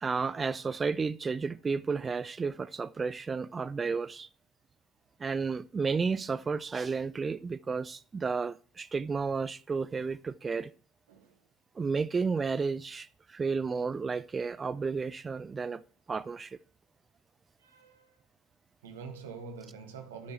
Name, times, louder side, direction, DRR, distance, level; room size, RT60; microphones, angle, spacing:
voice 1, 0.0-4.3 5.2-10.7 11.8-15.8 16.1-16.6, right 5 dB, 25° right, 0.4 m, -32 dB
voice 2, 11.1-11.5 17.6-18.3 18.8-20.3, right 5 dB, 70° right, 1.5 m, -45 dB
10.0 x 5.4 x 4.3 m
figure-of-eight pair, 60°, 0 cm